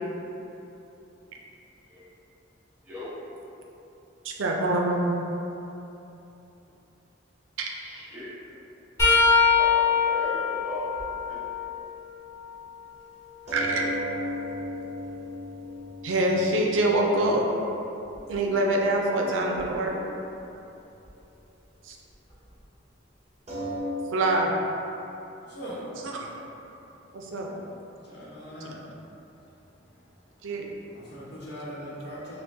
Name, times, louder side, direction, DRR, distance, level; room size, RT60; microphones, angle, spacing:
voice 1, 4.2-5.2 7.6-7.7 13.5-13.8 16.0-17.4 18.3-20.0 21.8-22.0 24.1-24.5 27.1-27.5 30.4-30.7, right 1 dB, 85° right, 0 dB, 0.5 m, -25 dB
voice 2, 7.8-8.3 9.6-11.4 13.7-13.8, equal, 5° right, -11 dB, 0.9 m, -37 dB
sound 1, 9.0-12.8 13.3-15.2 18.1-18.3 19.6-19.7 21.1-21.2, left 5 dB, 15° left, 1.1 m, -25 dB
sound 2, 13.5-18.5 18.9-19.0 19.2-19.3 19.7-19.8 23.5-23.8, equal, 35° right, 0.7 m, -36 dB
voice 3, 25.4-26.0 27.0-27.3 27.9-30.2 30.9-32.4, equal, 60° left, -8 dB, 1.0 m, -42 dB
5.7 x 2.1 x 2.7 m, 2.9 s
head